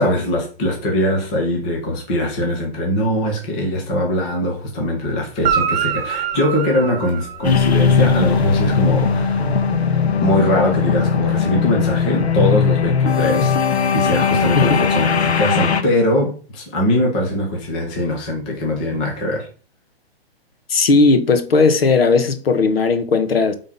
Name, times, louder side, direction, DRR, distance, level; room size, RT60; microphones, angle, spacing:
voice 1, 0.0-9.5 10.2-19.5, left 1 dB, 10° left, 0.5 m, -21 dB
Guitar, 5.4-8.0 11.8-11.9, right 8 dB, 40° right, 2.0 m, -24 dB
sound 1, 7.4-15.8, left 6 dB, 80° left, 1.4 m, -18 dB
voice 2, 20.7-23.6, left 4 dB, 65° left, 1.5 m, -16 dB
8.2 x 3.7 x 5.6 m
hypercardioid pair, 165°, 32 cm